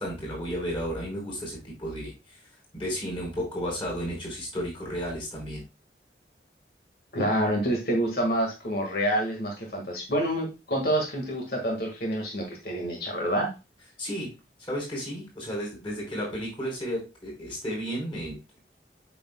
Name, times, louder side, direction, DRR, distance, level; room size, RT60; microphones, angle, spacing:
voice 1, 0.0-2.4 2.7-5.6 14.0-14.3 14.6-18.4, equal, 30° left, -2 dB, 4.2 m, -33 dB
voice 2, 7.1-13.5, right 1 dB, 60° left, 0 dB, 1.7 m, -27 dB
8.4 x 6.1 x 2.2 m, 0.26 s
head